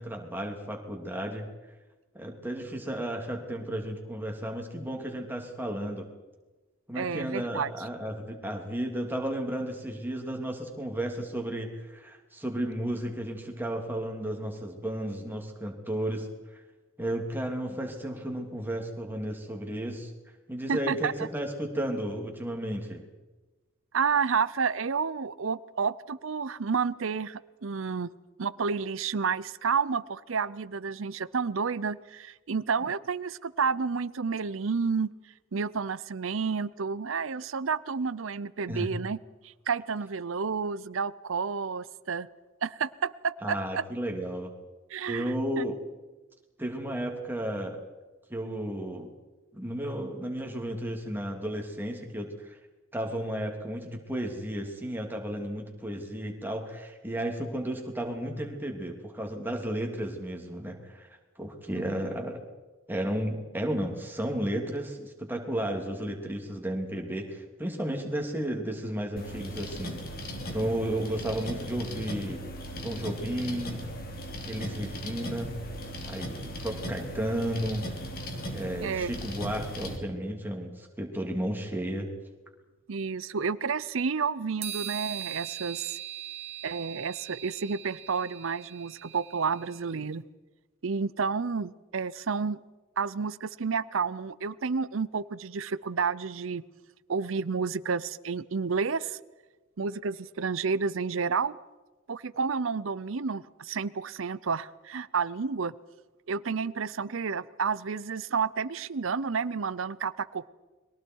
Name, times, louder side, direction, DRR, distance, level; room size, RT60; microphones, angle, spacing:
voice 1, 0.0-1.5 2.1-6.1 6.9-16.6 17.0-20.1 20.5-23.1 38.7-38.9 43.4-44.5 45.1-45.8 46.6-47.8 48.3-49.1 49.5-52.6 52.9-62.4 62.9-70.0 70.5-72.4 72.8-73.9 74.4-75.6 76.1-77.9 78.5-82.1, right 1 dB, 10° right, 2 dB, 3.0 m, -33 dB
voice 2, 6.9-7.7 20.7-21.1 23.9-28.1 28.4-35.1 35.5-39.2 39.4-42.3 42.6-43.8 44.9-45.2 45.6-45.7 61.7-62.0 78.8-79.1 82.9-86.0 86.6-90.2 90.8-92.6 93.0-96.6 97.1-99.2 99.8-101.6 102.1-105.7 106.3-110.5, right 5 dB, 75° right, 17 dB, 0.6 m, -30 dB
sound 1, 69.2-80.0, equal, 45° left, 3.2 m, -38 dB
sound 2, 84.6-89.9, right 11 dB, 30° right, 2.2 m, -40 dB
30.0 x 22.5 x 4.7 m, 1.2 s
head